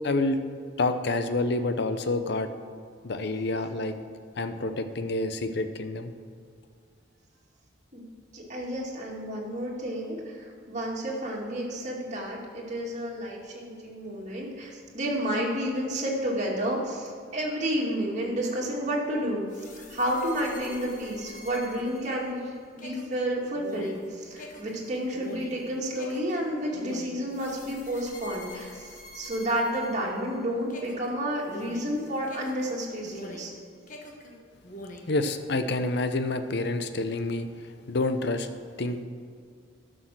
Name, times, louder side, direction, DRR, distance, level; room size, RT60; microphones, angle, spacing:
voice 1, 0.0-0.4 0.8-2.5 3.0-4.0 4.4-6.1 35.1-38.5 38.8-39.0, left 2 dB, 60° left, 9 dB, 0.8 m, -28 dB
voice 2, 8.3-19.4 19.9-33.5, equal, 40° right, -3 dB, 2.3 m, -31 dB
sound 1, 19.5-30.4 30.7-33.6 33.9-35.2, left 1 dB, 45° left, 1.3 m, -45 dB
12.0 x 6.4 x 6.2 m, 2.2 s
head